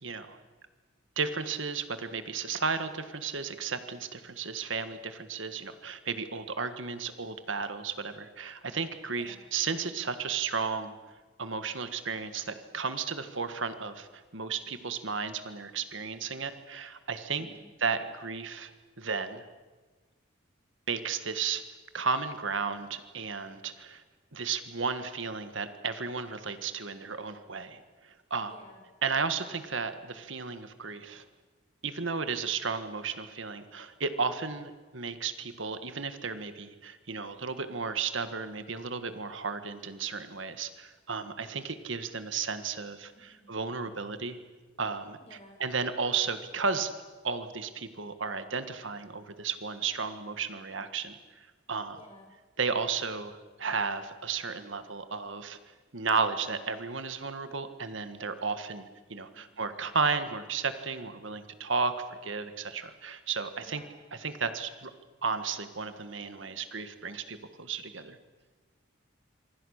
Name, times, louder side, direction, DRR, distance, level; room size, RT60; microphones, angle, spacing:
voice 1, 0.0-0.4 1.2-10.9 11.4-17.5 17.8-19.5 20.9-21.6 21.9-24.0 24.3-28.5 29.0-31.2 31.8-44.4 44.8-45.2 45.6-46.9 47.2-52.0 52.6-55.6 55.9-63.8 64.2-64.9 65.2-68.2, right 5 dB, 70° right, 10 dB, 1.6 m, -34 dB
voice 2, 9.1-9.4 17.3-17.7 28.5-28.8 43.1-43.5 45.2-45.6 51.9-52.3 59.3-59.7 63.6-63.9, left 1 dB, 30° left, 0 dB, 7.0 m, -54 dB
26.5 x 25.0 x 6.6 m, 1.3 s
head